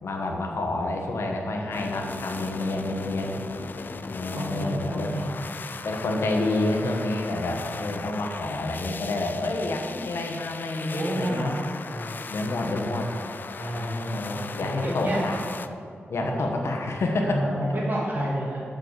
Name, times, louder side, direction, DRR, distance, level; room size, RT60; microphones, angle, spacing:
voice 1, 0.0-3.4 4.1-5.1 5.8-11.5 12.3-13.1 13.7-15.4 16.1-17.4, left 2 dB, 80° left, 2 dB, 1.1 m, -28 dB
sound 1, 1.7-15.7, left 4 dB, 45° left, 0.3 m, -38 dB
voice 2, 4.0-5.4 7.3-7.5 10.9-12.3 13.6-15.2 16.2-16.5 17.2-18.6, right 1 dB, 45° right, -5 dB, 2.3 m, -31 dB
6.4 x 6.4 x 6.9 m, 2.5 s
wide cardioid pair, 165°, 4 cm